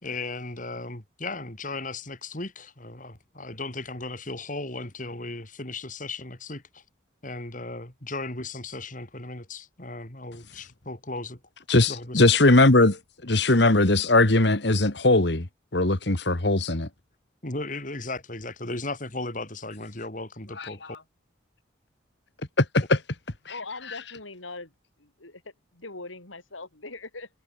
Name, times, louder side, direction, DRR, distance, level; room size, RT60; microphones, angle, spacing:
voice 1, 0.0-6.8 7.2-11.4 11.9-12.2 17.4-21.0, left 2 dB, 40° left, 3.8 m, -36 dB
voice 2, 11.7-15.5 15.7-16.9 20.6-20.7 22.6-23.0, left 2 dB, 60° left, 1.9 m, -20 dB
voice 3, 23.5-24.7 25.0-27.3, left 3 dB, 90° left, 6.5 m, -41 dB
head